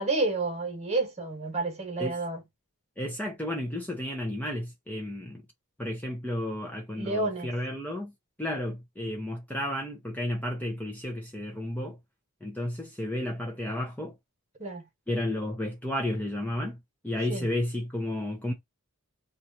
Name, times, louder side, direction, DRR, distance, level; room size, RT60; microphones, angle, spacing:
voice 1, 0.0-2.4 6.9-7.5 14.6-14.8 17.3-17.5, right 2 dB, 30° right, 1.4 m, -30 dB
voice 2, 3.0-5.4 5.8-8.1 8.4-12.0 12.4-14.1 15.1-16.8 17.0-18.5, left 1 dB, 10° left, 0.7 m, -32 dB
3.0 x 2.5 x 4.0 m
head